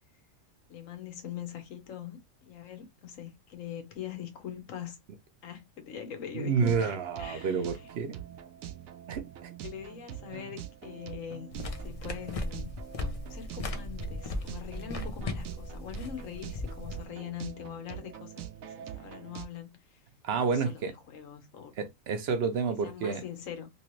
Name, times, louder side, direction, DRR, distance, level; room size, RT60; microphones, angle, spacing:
voice 1, 0.7-5.0 5.4-7.9 9.6-12.7 13.3-20.0 20.3-21.7 22.8-23.7, left 9 dB, 75° left, 1.3 m, -43 dB
voice 2, 6.3-8.2 9.1-9.5 20.2-20.9 21.8-23.2, right 5 dB, 60° right, 0.8 m, -29 dB
sound 1, 6.6-19.5, right 11 dB, 85° right, 1.0 m, -44 dB
sound 2, 11.5-17.0, left 2 dB, 50° left, 0.4 m, -37 dB
3.1 x 3.0 x 3.0 m
omnidirectional pair, 1.4 m